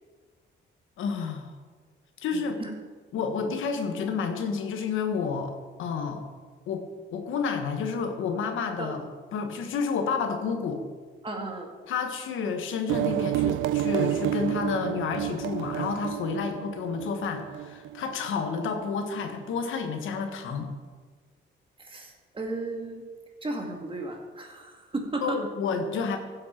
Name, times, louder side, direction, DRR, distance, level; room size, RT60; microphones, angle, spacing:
voice 1, 1.0-1.5 2.2-2.5 3.1-6.2 6.7-6.8 7.1-9.0 9.3-10.8 11.9-20.7 25.2-26.2, left 5 dB, 80° left, 5 dB, 1.5 m, -30 dB
voice 2, 2.3-2.7 8.8-9.0 11.2-11.7 16.3-16.4 21.8-23.0 23.4-25.4, right 2 dB, 25° right, 2 dB, 2.2 m, -34 dB
sound 1, 12.9-18.3, right 13 dB, 80° right, 0.4 m, -30 dB
15.5 x 7.6 x 4.5 m, 1.5 s
cardioid pair, 90°, 20 cm